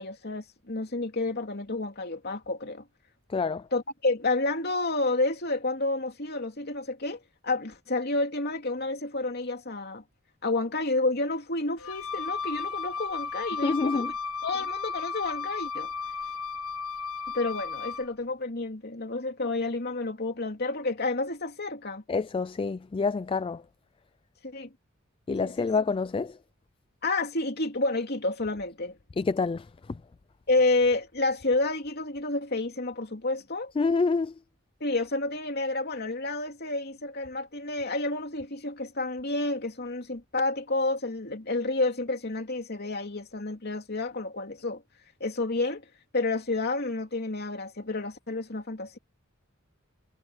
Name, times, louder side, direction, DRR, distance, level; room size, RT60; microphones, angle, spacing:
voice 1, 0.0-2.9 3.7-10.0 10.4-14.1 14.4-15.9 17.3-22.0 24.4-24.7 25.4-25.7 27.0-29.0 30.5-33.7 34.8-44.8 45.2-45.9 46.1-49.0, left 2 dB, 50° left, 3.0 m, -30 dB
voice 2, 3.3-3.7 13.6-14.1 22.1-23.6 25.3-26.4 29.2-30.0 33.8-34.3, left 4 dB, 25° left, 0.3 m, -27 dB
Wind instrument woodwind instrument, 11.8-18.1, left 5 dB, 85° left, 1.5 m, -34 dB
head